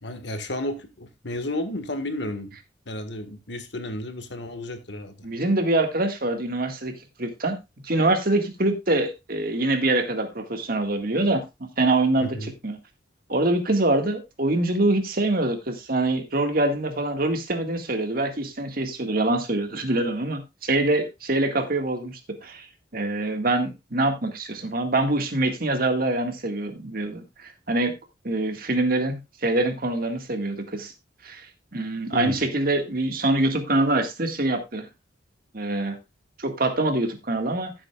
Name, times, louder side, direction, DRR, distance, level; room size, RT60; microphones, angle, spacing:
voice 1, 0.0-2.6 2.9-5.1 12.2-12.5 32.1-32.4, left 1 dB, 70° left, 1.7 m, -32 dB
voice 2, 5.2-6.9 7.2-7.6 7.8-11.4 11.8-12.8 13.3-22.7 22.9-27.9 28.2-30.9 31.2-31.5 31.7-34.9 35.5-36.0 36.4-37.7, right 2 dB, 50° right, 1.8 m, -24 dB
15.5 x 7.9 x 2.4 m
head